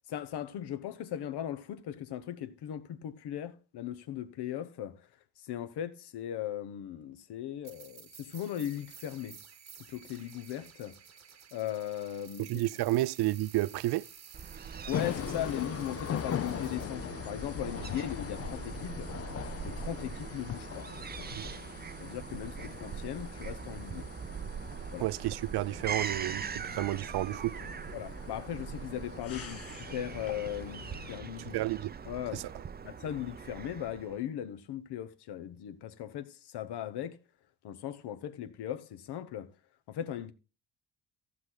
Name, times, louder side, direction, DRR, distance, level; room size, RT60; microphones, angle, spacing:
voice 1, 0.1-5.1 5.4-9.4 9.9-10.9 11.5-12.6 14.8-19.1 19.6-20.9 22.0-24.1 24.9-25.1 27.9-31.6 32.1-32.4 32.8-37.2 37.6-39.5 39.9-40.3, left 11 dB, 80° left, 1.1 m, -38 dB
sound 1, 7.6-16.8, right 7 dB, 40° right, 1.1 m, -53 dB
voice 2, 12.4-14.1 21.4-21.5 25.0-27.6 31.5-31.9 32.3-32.4, right 17 dB, 75° right, 0.5 m, -31 dB
Fowl / Gull seagull, 14.3-34.2, right 6 dB, 25° right, 0.5 m, -42 dB
sound 2, 14.9-31.2, left 10 dB, 40° left, 0.5 m, -41 dB
14.5 x 6.2 x 3.9 m
cardioid pair, 95°, 39 cm